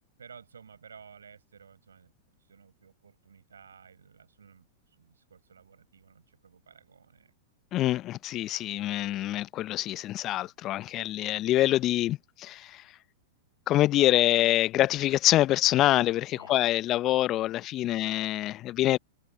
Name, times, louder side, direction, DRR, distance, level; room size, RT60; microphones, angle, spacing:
voice 1, 0.2-2.1 2.4-7.3 16.3-16.6 17.8-18.1, right 6 dB, 80° right, 6.4 m, -54 dB
voice 2, 7.7-12.8 13.7-19.0, left 14 dB, 35° left, 0.8 m, -25 dB
figure-of-eight pair, 100°, 0 cm